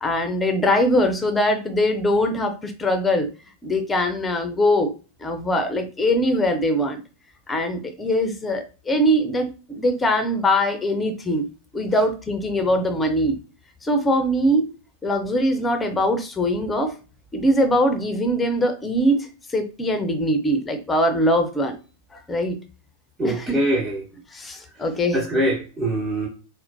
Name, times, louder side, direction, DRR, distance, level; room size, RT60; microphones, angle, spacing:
voice 1, 0.0-3.3 3.6-4.9 5.2-7.0 7.5-11.5 11.7-13.4 13.8-14.7 15.0-16.9 17.3-21.8 22.1-22.6 23.2-23.6 24.3-25.2, equal, 15° left, 0.6 m, -22 dB
voice 2, 23.2-24.0 25.1-26.3, right 1 dB, 20° right, 0.8 m, -23 dB
4.2 x 2.1 x 2.6 m
figure-of-eight pair, 90°, 0 cm